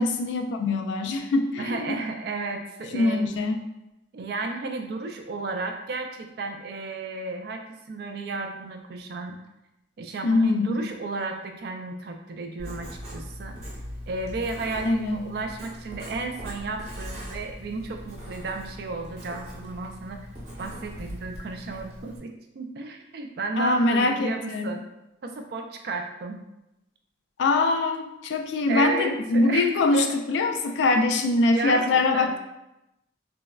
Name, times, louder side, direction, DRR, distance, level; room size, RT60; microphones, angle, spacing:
voice 1, 0.0-2.0 2.9-3.6 10.2-10.8 14.9-15.2 23.6-24.7 27.4-32.4, left 2 dB, 75° left, 5 dB, 0.3 m, -23 dB
voice 2, 1.6-3.3 4.1-9.3 10.0-13.6 14.1-20.2 20.6-24.8 25.2-26.4 28.7-30.1 30.5-30.6 31.5-32.4, right 3 dB, 55° right, 4 dB, 0.3 m, -33 dB
Writing, 12.6-22.2, equal, 40° right, 0.8 m, -40 dB
3.3 x 2.0 x 2.3 m, 0.92 s
head